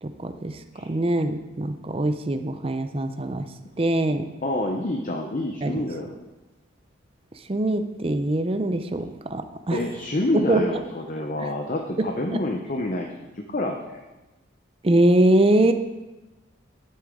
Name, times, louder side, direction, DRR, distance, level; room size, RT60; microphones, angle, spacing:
voice 1, 0.0-3.5 3.8-4.3 5.6-5.9 7.5-9.8 10.3-10.8 11.4-11.5 12.0-12.1 12.3-12.4 14.8-15.7, right 1 dB, 30° right, 9 dB, 0.5 m, -23 dB
voice 2, 4.4-6.2 9.7-14.0, left 1 dB, 40° left, 3 dB, 0.7 m, -28 dB
11.0 x 8.7 x 3.7 m, 1.1 s
head